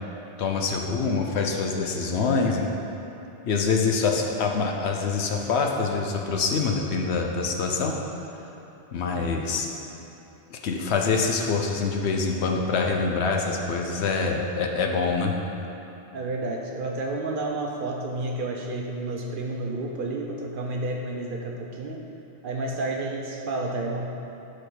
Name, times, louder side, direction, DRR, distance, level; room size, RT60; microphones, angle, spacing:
voice 1, 0.4-2.7 3.4-7.9 8.9-9.7 10.5-15.3, left 4 dB, 75° left, 2 dB, 0.9 m, -25 dB
voice 2, 16.1-22.0 22.4-24.1, right 2 dB, 60° right, 0 dB, 0.7 m, -30 dB
5.1 x 4.2 x 6.0 m, 2.9 s
omnidirectional pair, 1.2 m